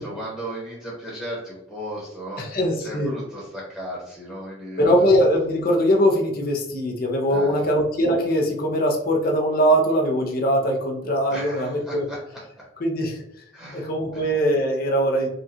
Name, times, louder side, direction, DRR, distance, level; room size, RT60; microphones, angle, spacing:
voice 1, 0.0-5.0 7.3-7.6 11.3-12.2 13.5-14.2, equal, ahead, -7 dB, 1.0 m, -36 dB
voice 2, 2.4-3.1 4.8-12.0 12.8-13.2 13.7-15.3, equal, 50° left, 0 dB, 0.7 m, -21 dB
5.1 x 2.3 x 2.8 m, 0.77 s
head